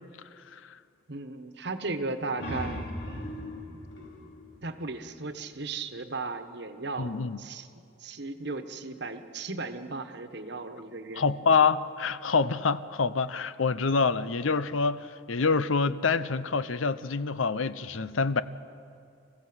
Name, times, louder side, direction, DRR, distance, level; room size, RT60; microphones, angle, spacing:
voice 1, 1.1-2.8 4.6-7.7 8.0-11.2, right 3 dB, 60° right, 9 dB, 1.3 m, -36 dB
sound 1, 2.1-5.5, left 1 dB, 60° left, 3.3 m, -39 dB
voice 2, 7.0-7.4 11.2-18.4, left 4 dB, 85° left, 15 dB, 0.7 m, -26 dB
27.0 x 15.5 x 7.9 m, 2.4 s
head